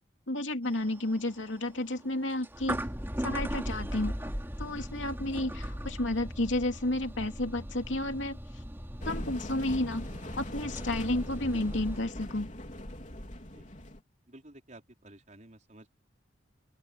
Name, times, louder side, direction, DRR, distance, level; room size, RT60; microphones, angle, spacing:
voice 1, 0.3-2.9 3.2-4.3 4.6-8.4 9.0-10.1 10.4-12.5, left 1 dB, 80° left, 2.7 m, -32 dB
sound 1, 0.6-12.0, equal, 10° right, 2.7 m, -39 dB
sound 2, 9.0-14.0, left 1 dB, 40° left, 3.8 m, -41 dB
voice 2, 14.3-15.9, right 1 dB, 40° right, 4.6 m, -53 dB
open air
head